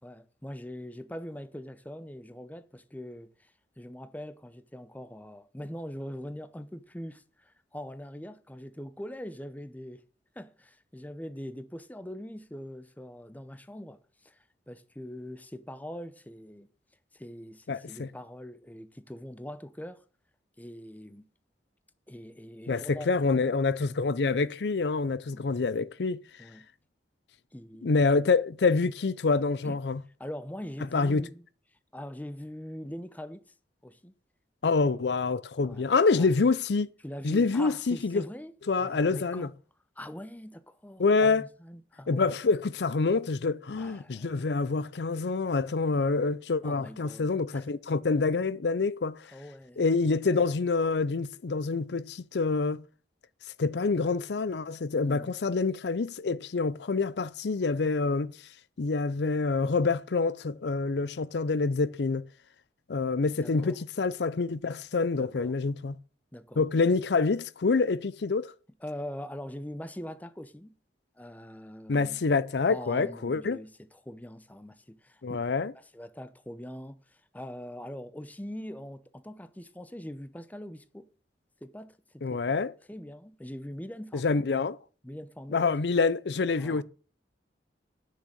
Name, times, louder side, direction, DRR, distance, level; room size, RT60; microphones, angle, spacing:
voice 1, 0.0-10.0 10.4-16.7 17.1-20.0 20.6-21.3 22.1-23.3 25.3-25.5 26.4-26.7 27.5-28.1 29.6-29.8 30.2-31.4 31.9-33.4 33.8-34.1 34.7-35.0 35.6-35.8 36.1-36.3 37.0-39.5 40.0-42.4 43.7-44.5 46.6-47.7 49.3-49.8 55.0-55.3 63.4-63.8 65.1-65.5 66.3-66.6 68.8-70.7 71.2-72.2 72.7-75.2 75.7-81.1 81.6-82.2 82.9-84.4 85.0-85.7 86.6-86.8, equal, 10° left, 0.7 m, -42 dB
voice 2, 17.7-18.1 22.7-26.2 27.8-30.0 30.9-31.2 34.6-36.9 37.2-38.3 38.7-39.5 41.0-41.5 42.1-49.3 49.8-52.8 53.6-58.3 58.8-62.2 62.9-66.0 66.6-68.5 71.9-73.6 75.2-75.7 82.2-82.7 84.1-84.8 85.5-86.8, left 4 dB, 70° left, 0.5 m, -27 dB
10.0 x 6.5 x 7.4 m
head